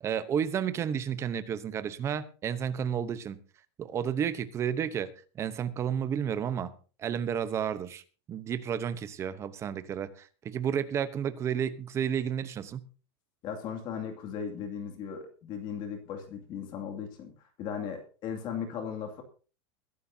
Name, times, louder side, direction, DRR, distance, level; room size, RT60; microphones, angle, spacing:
voice 1, 0.0-3.4 3.8-6.7 7.0-8.0 8.3-12.9, right 8 dB, 20° right, 0.9 m, -31 dB
voice 2, 13.4-17.3 17.6-19.2, left 7 dB, 35° left, 2.5 m, -37 dB
22.0 x 11.5 x 2.8 m
supercardioid pair, 170°, 14 cm